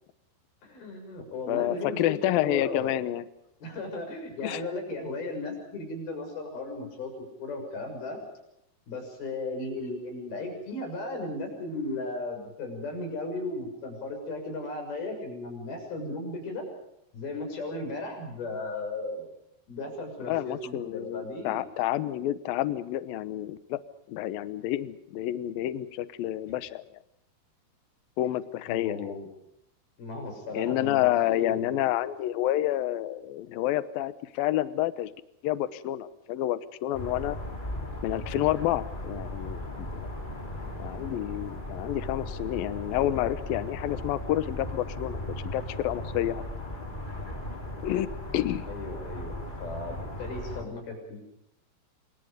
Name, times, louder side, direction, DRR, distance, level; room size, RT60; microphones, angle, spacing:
voice 1, 0.6-2.9 3.6-8.2 8.9-16.7 17.1-19.3 19.7-21.7 28.7-29.3 30.0-31.8 48.7-51.2, left 2 dB, 55° left, 4 dB, 8.4 m, -36 dB
voice 2, 1.5-3.2 4.4-4.6 20.3-23.8 24.1-26.8 28.2-29.2 30.5-35.1 35.4-37.4 38.0-40.1 40.8-45.2 45.4-46.4 47.8-48.7, left 13 dB, 70° left, 15 dB, 2.2 m, -29 dB
sound 1, 36.9-50.6, left 1 dB, 10° left, 3.1 m, -37 dB
27.5 x 25.5 x 5.2 m, 0.80 s
omnidirectional pair, 5.4 m